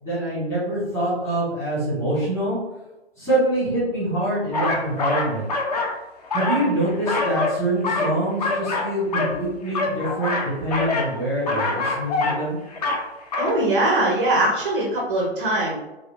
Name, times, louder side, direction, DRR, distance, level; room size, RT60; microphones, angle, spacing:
voice 1, 0.0-2.6 3.2-5.4 6.3-12.6, right 1 dB, 10° left, -12 dB, 1.5 m, -25 dB
sound 1, 4.5-6.0 6.2-7.6 7.8-9.4 9.7-11.1 11.5-12.4 12.7-13.1 13.3-13.5, left 3 dB, 35° left, 0.5 m, -25 dB
voice 2, 13.4-15.7, right 1 dB, 20° right, -2 dB, 0.4 m, -21 dB
4.9 x 2.2 x 2.6 m, 1.0 s
figure-of-eight pair, 130°, 33 cm